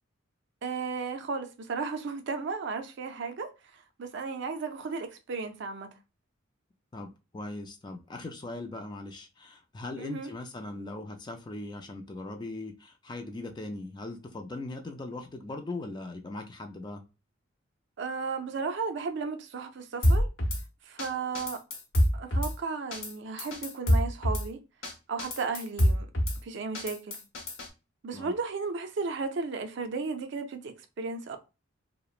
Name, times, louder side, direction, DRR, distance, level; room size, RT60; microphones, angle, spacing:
voice 1, 0.6-5.9 10.0-10.3 18.0-20.3 20.8-21.6 22.1-24.6 25.1-26.1 26.4-27.2 28.0-31.4, right 4 dB, 60° right, 0.4 m, -34 dB
voice 2, 6.9-17.0 28.1-28.3, left 2 dB, 20° left, 0.3 m, -39 dB
Drum kit / Snare drum, 20.0-20.6 21.0-21.1 21.3-22.5 22.9-23.1 23.4-24.4 24.8-24.9 25.2-26.4 26.7-27.7, equal, 65° left, 0.8 m, -26 dB
2.9 x 2.0 x 2.4 m
head